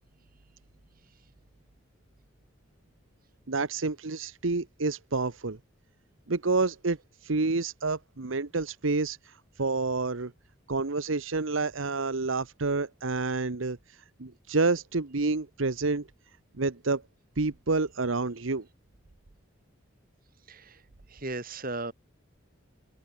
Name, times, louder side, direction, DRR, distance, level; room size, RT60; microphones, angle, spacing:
voice 1, 3.5-5.6 6.3-7.0 7.2-10.3 10.7-16.1 16.6-17.0 17.4-18.6, right 3 dB, 80° right, 1.1 m, -29 dB
voice 2, 20.5-20.8 21.1-21.9, right 2 dB, 45° right, 3.6 m, -36 dB
head